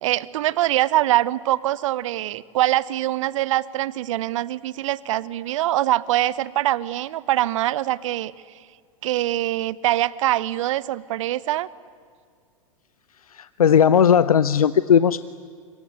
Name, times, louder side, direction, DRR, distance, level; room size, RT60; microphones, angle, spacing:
voice 1, 0.0-8.3 9.0-11.7, right 14 dB, 60° right, 20 dB, 0.9 m, -23 dB
voice 2, 13.3-15.2, left 8 dB, 85° left, 16 dB, 0.7 m, -17 dB
25.5 x 23.5 x 9.6 m, 2.1 s
hypercardioid pair, 95°, 18 cm